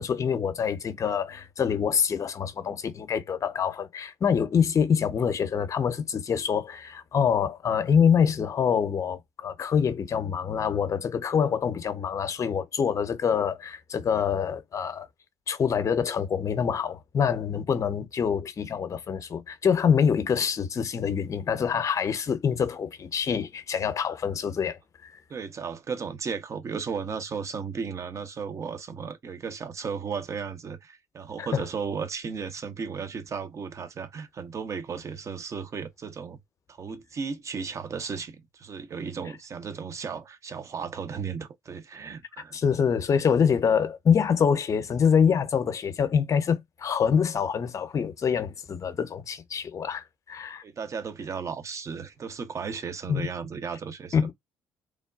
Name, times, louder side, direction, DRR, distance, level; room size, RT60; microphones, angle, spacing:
voice 1, 0.0-15.1 15.5-24.8 31.4-31.6 42.5-50.6 53.1-53.3 54.1-54.3, left 7 dB, 45° left, 0.7 m, -25 dB
voice 2, 25.3-36.4 36.7-42.6 50.6-54.2, right 6 dB, 40° right, 0.7 m, -35 dB
3.4 x 2.2 x 2.3 m
hypercardioid pair, 55°, 8 cm